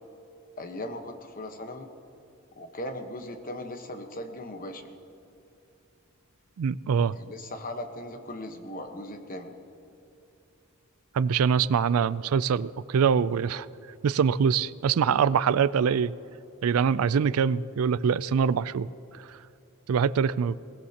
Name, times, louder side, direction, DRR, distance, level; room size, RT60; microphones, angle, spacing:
voice 1, 0.6-1.9 2.6-4.9 7.2-9.5, left 1 dB, 40° left, 6 dB, 1.1 m, -38 dB
voice 2, 6.6-7.2 11.1-13.7 14.0-16.1 16.6-18.9 19.9-20.6, right 6 dB, 80° right, 18 dB, 0.4 m, -24 dB
22.5 x 18.5 x 2.9 m, 2.8 s
head